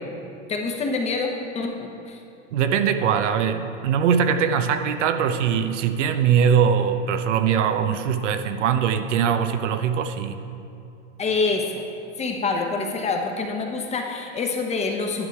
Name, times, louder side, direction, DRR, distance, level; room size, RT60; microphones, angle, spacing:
voice 1, 0.5-2.2 11.2-11.8 12.2-15.3, left 4 dB, 20° left, 2 dB, 0.9 m, -26 dB
voice 2, 2.5-10.4, right 7 dB, 85° right, 9 dB, 0.7 m, -21 dB
11.0 x 6.7 x 4.7 m, 2.7 s
supercardioid pair, 130°, 35 cm